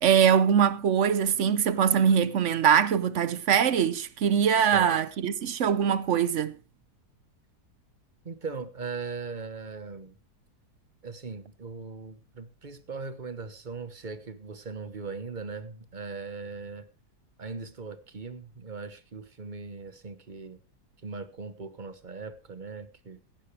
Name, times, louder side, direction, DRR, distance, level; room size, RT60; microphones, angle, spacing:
voice 1, 0.0-6.6, right 8 dB, 55° right, 0.9 m, -23 dB
voice 2, 8.2-10.2 11.0-16.9 17.4-20.6 21.0-23.2, right 4 dB, 30° right, 1.1 m, -39 dB
16.5 x 12.0 x 3.2 m
omnidirectional pair, 1.7 m